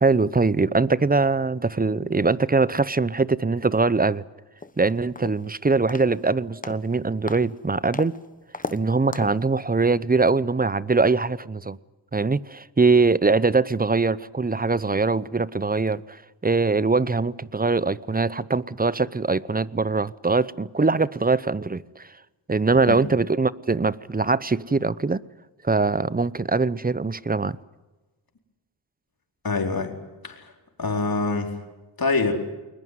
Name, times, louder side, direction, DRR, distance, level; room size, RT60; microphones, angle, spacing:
voice 1, 0.0-4.2 4.8-8.1 8.7-11.8 12.1-22.1 22.5-25.2 25.6-27.6, right 3 dB, 20° right, 0.7 m, -22 dB
sound 1, 4.6-4.7 5.2-5.5 5.9-6.2 6.6-6.9 7.3-7.5 7.9-8.2 8.5-8.8 9.1-9.4, left 3 dB, 20° left, 1.1 m, -34 dB
voice 2, 29.4-29.9 30.2-30.5 30.8-31.5 32.0-32.5, left 3 dB, 50° left, 4.4 m, -25 dB
21.0 x 20.5 x 9.6 m
cardioid pair, 65°, 45 cm